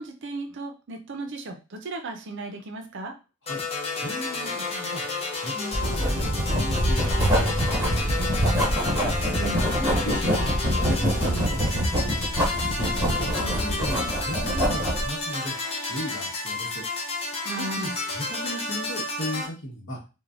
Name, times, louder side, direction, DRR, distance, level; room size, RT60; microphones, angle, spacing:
voice 1, 0.0-3.1 9.4-9.6 17.4-18.0, right 2 dB, 55° right, 5 dB, 0.5 m, -35 dB
sound 1, 3.5-19.5, left 3 dB, 25° left, 0.6 m, -31 dB
voice 2, 3.9-5.0 5.3-8.6 9.1-15.5 15.8-16.8 17.6-20.0, equal, 55° left, -1 dB, 1.2 m, -36 dB
Writing, 5.7-15.1, equal, 10° right, 1.3 m, -25 dB
3.2 x 2.2 x 2.4 m, 0.30 s
head